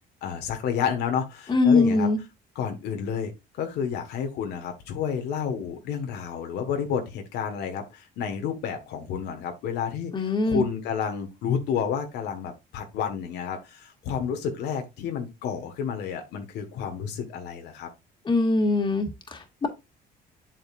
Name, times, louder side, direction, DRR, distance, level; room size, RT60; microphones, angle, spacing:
voice 1, 0.2-2.1 2.5-3.3 3.6-10.1 10.5-17.9, left 7 dB, 80° left, 1.5 m, -30 dB
voice 2, 1.5-2.2 10.1-10.6 18.3-19.7, left 3 dB, 25° left, 2.0 m, -22 dB
7.8 x 6.4 x 2.5 m
cardioid pair, 110°, 17 cm